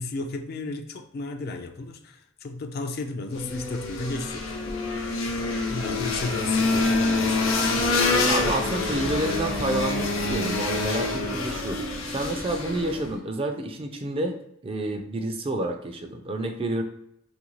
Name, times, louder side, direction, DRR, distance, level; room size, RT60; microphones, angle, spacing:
voice 1, 0.0-4.5 5.5-7.8, left 3 dB, 50° left, 7 dB, 0.4 m, -33 dB
sound 1, 3.3-13.1, left 3 dB, 85° left, 0.7 m, -26 dB
voice 2, 8.3-14.4 14.6-16.8, right 2 dB, 30° right, 5 dB, 0.3 m, -29 dB
3.0 x 2.5 x 3.1 m, 0.77 s
head